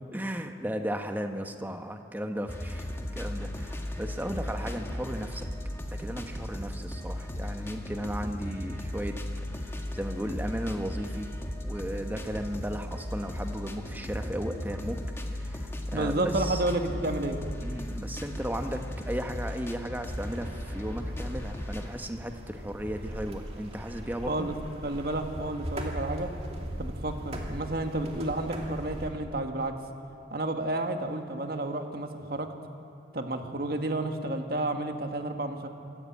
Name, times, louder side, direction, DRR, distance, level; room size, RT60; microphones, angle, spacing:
voice 1, 0.1-2.9 3.1-5.5 6.0-9.2 9.5-11.3 11.6-15.0 15.3-16.6 17.6-24.5, equal, 10° right, 5 dB, 1.1 m, -35 dB
sound 1, 2.5-21.9, left 1 dB, 15° left, 1.5 m, -36 dB
voice 2, 15.9-17.4 24.3-24.5 24.8-26.3 26.8-29.7 30.3-32.5 33.1-35.7, right 2 dB, 55° right, 5 dB, 1.6 m, -31 dB
sound 2, 20.1-29.1, equal, 35° right, 2.7 m, -39 dB
26.5 x 14.0 x 8.6 m, 2.6 s
head